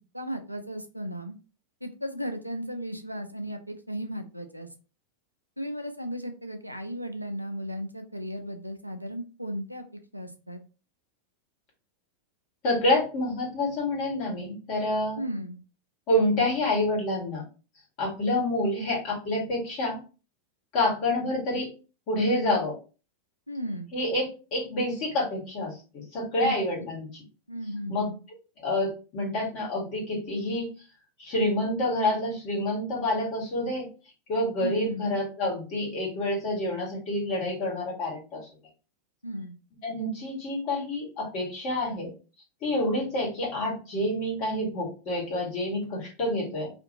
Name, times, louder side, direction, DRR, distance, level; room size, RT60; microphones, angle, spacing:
voice 1, 0.1-1.4 1.8-4.7 5.6-10.6 15.2-15.6 23.5-23.9 26.4-26.6 27.5-28.2 34.6-35.1 39.2-39.5, equal, 90° right, 7 dB, 0.4 m, -35 dB
voice 2, 12.6-15.2 16.1-17.4 18.0-20.0 20.7-21.7 22.1-22.8 23.9-27.2 27.9-28.1 28.6-30.7 31.2-33.9 34.3-38.5 39.8-42.1 42.6-46.7, left 1 dB, 40° left, -2 dB, 1.5 m, -28 dB
2.6 x 2.5 x 2.8 m, 0.34 s
figure-of-eight pair, 90°, 0 cm